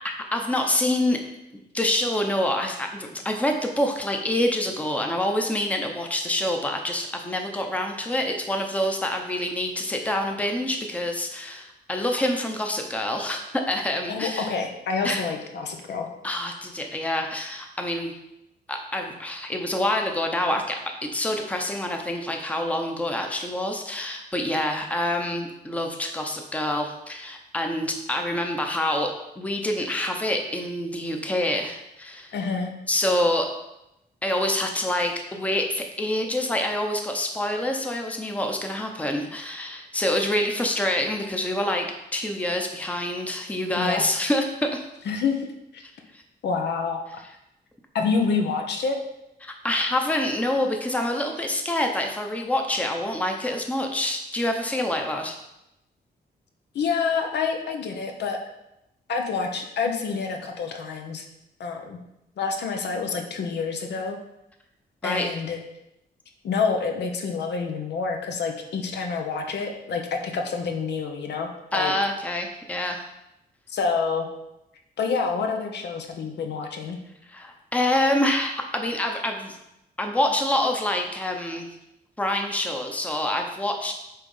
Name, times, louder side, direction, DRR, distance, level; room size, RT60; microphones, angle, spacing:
voice 1, 0.3-1.2 1.7-14.5 15.0-15.2 16.2-18.1 18.7-20.8 21.1-32.3 32.9-33.5 34.2-41.9 42.1-44.8 46.1-46.2 49.4-55.4 65.0-65.3 71.7-73.1 77.3-79.6 80.0-81.7 82.2-83.9, left 1 dB, 10° left, 3 dB, 0.8 m, -26 dB
voice 2, 14.1-16.1 32.3-32.7 43.8-44.1 45.1-45.5 45.7-45.8 46.4-47.0 47.9-49.0 56.7-58.4 59.1-61.2 61.6-62.0 62.4-64.2 65.0-65.6 66.4-71.9 73.7-74.3 75.0-77.0, left 5 dB, 80° left, 4 dB, 1.1 m, -27 dB
9.0 x 3.7 x 5.5 m, 0.87 s
wide cardioid pair, 170°, 17 cm